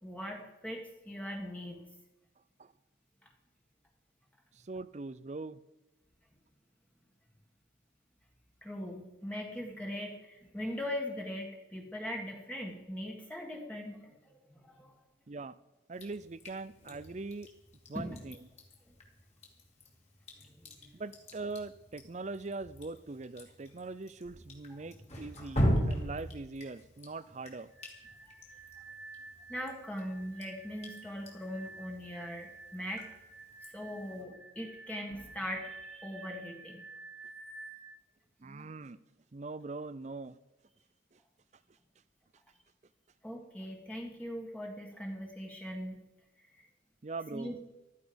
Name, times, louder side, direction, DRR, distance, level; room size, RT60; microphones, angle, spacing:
voice 1, 0.0-1.8 8.6-14.9 17.9-18.2 18.9-19.0 20.4-20.9 29.5-33.1 33.7-36.8 43.2-46.0 47.3-47.6, equal, 5° left, 0 dB, 1.7 m, -40 dB
voice 2, 4.5-5.6 15.3-15.6 15.9-17.5 17.9-18.4 20.9-27.7 38.4-39.0 39.3-40.4 41.1-41.2 47.0-47.6, right 3 dB, 35° right, 16 dB, 0.5 m, -42 dB
Drip, 15.9-34.2, equal, 35° left, 2.7 m, -40 dB
sound 1, 27.7-37.9, right 3 dB, 55° left, 1.6 m, -51 dB
15.0 x 13.0 x 5.2 m, 1.0 s
head